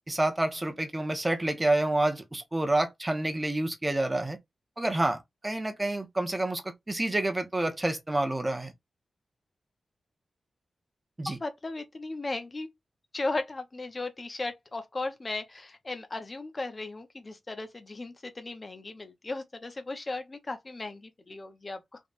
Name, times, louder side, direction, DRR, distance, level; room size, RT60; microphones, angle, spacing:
voice 1, 0.1-4.4 4.8-8.7 11.2-11.4, right 2 dB, 15° right, 0.8 m, -28 dB
voice 2, 11.3-12.7 13.1-22.0, left 2 dB, 30° left, 0.7 m, -36 dB
3.5 x 2.3 x 4.0 m
wide cardioid pair, 135°, 0 cm